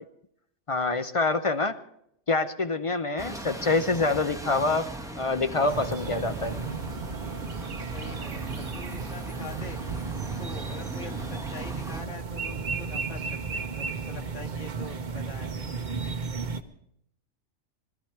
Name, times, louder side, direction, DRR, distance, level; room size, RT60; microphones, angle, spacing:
voice 1, 0.7-1.8 2.3-4.9 5.2-6.5, left 3 dB, 40° left, 10 dB, 0.5 m, -26 dB
Bus, 3.2-12.0, right 2 dB, 5° right, 0.9 m, -40 dB
sound 1, 5.7-16.6, right 4 dB, 40° right, 0.9 m, -34 dB
voice 2, 7.9-9.8 10.4-15.5, left 3 dB, 60° left, 3 dB, 2.1 m, -44 dB
sound 2, 10.2-16.1, right 9 dB, 65° right, 1.1 m, -46 dB
21.5 x 13.0 x 4.6 m, 0.74 s
omnidirectional pair, 1.4 m